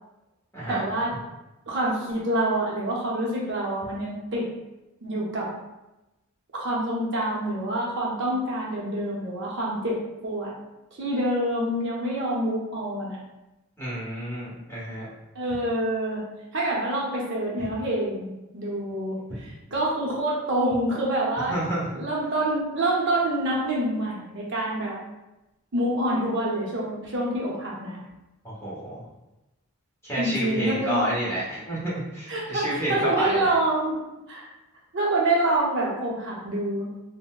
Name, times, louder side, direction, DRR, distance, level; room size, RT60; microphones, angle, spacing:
voice 1, 0.7-1.1 1.7-4.5 5.0-5.5 6.5-10.5 11.0-13.2 15.3-16.2 16.5-19.2 19.7-21.6 21.9-25.0 25.7-28.0 30.2-31.0 32.3-34.0 34.3-34.5 34.9-36.9, right 1 dB, 55° right, -4 dB, 0.7 m, -26 dB
voice 2, 13.8-15.1 17.6-17.7 21.5-21.9 28.4-29.0 30.0-33.5, right 1 dB, 10° left, -9 dB, 0.9 m, -29 dB
4.0 x 2.1 x 2.3 m, 0.98 s
head